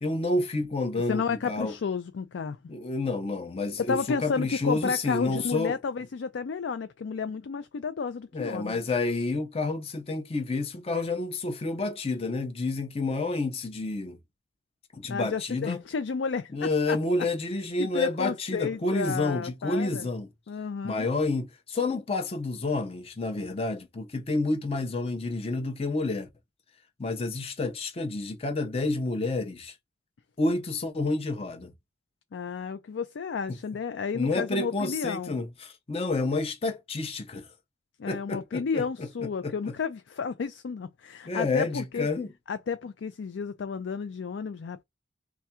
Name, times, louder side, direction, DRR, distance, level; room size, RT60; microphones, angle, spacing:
voice 1, 0.0-1.7 2.7-5.8 8.3-14.2 14.9-15.8 16.5-20.3 20.8-26.3 27.0-29.8 30.4-31.7 34.1-37.5 38.1-39.1 39.4-39.7 41.3-42.3, left 3 dB, 35° left, 0.5 m, -29 dB
voice 2, 1.1-2.6 3.8-8.8 15.1-17.0 17.8-20.1 20.5-21.1 32.3-35.3 38.0-42.1 42.5-44.8, left 5 dB, 85° left, 0.4 m, -32 dB
3.4 x 2.4 x 4.2 m
head